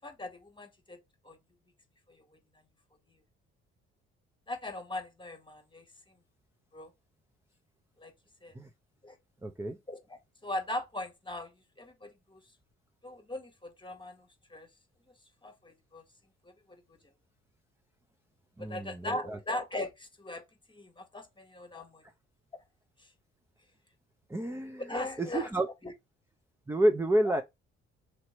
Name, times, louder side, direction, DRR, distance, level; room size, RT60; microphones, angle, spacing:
voice 1, 0.0-1.0 1.2-1.4 2.1-2.2 4.5-5.9 6.7-6.9 8.0-8.1 8.4-8.5 9.0-9.2 9.9-11.5 11.8-12.4 13.0-14.7 15.4-16.0 16.4-17.0 18.6-22.0 22.5-22.6 24.9-25.5 25.8-25.9 27.2-27.4, left 1 dB, 15° left, 1.3 m, -39 dB
voice 2, 9.4-9.8 18.6-19.4 24.3-24.9 25.2-25.7 26.7-27.4, right 1 dB, 10° right, 0.6 m, -29 dB
3.1 x 2.9 x 2.9 m
hypercardioid pair, 50°, 32 cm